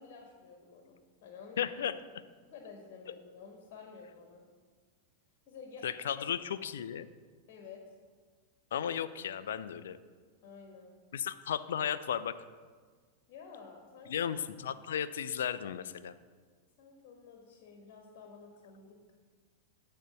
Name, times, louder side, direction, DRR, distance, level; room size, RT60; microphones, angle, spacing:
voice 1, 0.0-1.7 2.4-4.4 5.5-5.9 6.2-6.3 7.5-7.8 10.4-10.9 13.3-14.4 16.8-19.1, left 5 dB, 45° left, 2 dB, 1.3 m, -51 dB
voice 2, 1.6-2.0 5.8-7.1 8.7-10.0 11.1-12.4 14.1-16.1, left 9 dB, 60° left, 14 dB, 0.4 m, -34 dB
8.9 x 4.5 x 6.6 m, 1.5 s
figure-of-eight pair, 90°, 0 cm